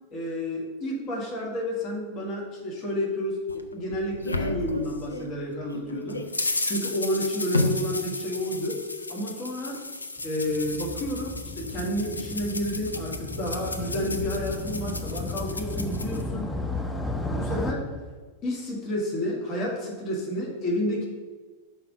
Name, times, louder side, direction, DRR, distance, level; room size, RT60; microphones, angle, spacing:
voice 1, 0.1-6.2 6.6-8.8 9.1-9.8 10.2-16.5 17.3-17.9 18.4-21.1, left 1 dB, 35° left, -2 dB, 1.6 m, -30 dB
sound 1, 3.5-5.3 5.7-16.2, left 2 dB, 80° left, 0.5 m, -33 dB
Motorcycle, 10.2-17.7, left 2 dB, 5° left, 0.6 m, -34 dB
5.7 x 4.3 x 5.1 m, 1.4 s
figure-of-eight pair, 90°, 0 cm